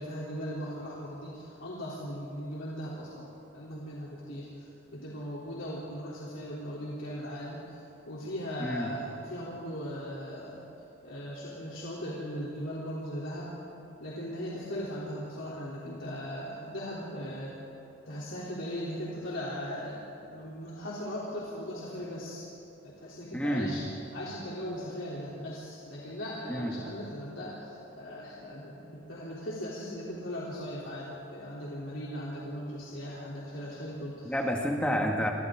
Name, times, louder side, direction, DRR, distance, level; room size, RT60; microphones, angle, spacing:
voice 1, 0.0-3.3 3.5-4.5 4.9-7.8 8.1-10.6 11.0-13.5 14.0-17.5 18.1-22.5 22.8-23.8 24.1-34.3, equal, 75° left, -7 dB, 3.4 m, -38 dB
voice 2, 23.3-23.8 26.5-26.7 34.2-35.3, equal, 5° left, 0 dB, 2.0 m, -29 dB
29.0 x 24.5 x 3.8 m, 2.8 s
head